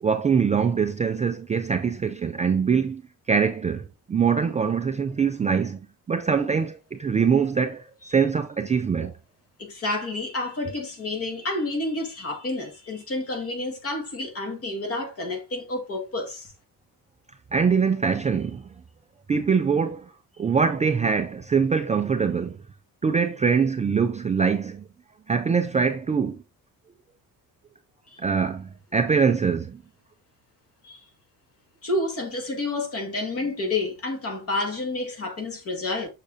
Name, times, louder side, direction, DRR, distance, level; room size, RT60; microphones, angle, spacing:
voice 1, 0.0-3.0 3.3-5.8 6.1-9.1 17.5-18.6 19.3-20.1 20.4-22.6 23.0-24.8 25.3-26.4 28.2-29.8, right 6 dB, 20° right, 0.4 m, -23 dB
voice 2, 9.6-16.5 28.1-28.2 30.8-31.0 31.8-36.1, left 2 dB, 40° left, 2.0 m, -29 dB
6.5 x 6.5 x 2.7 m
cardioid pair, 160°, 36 cm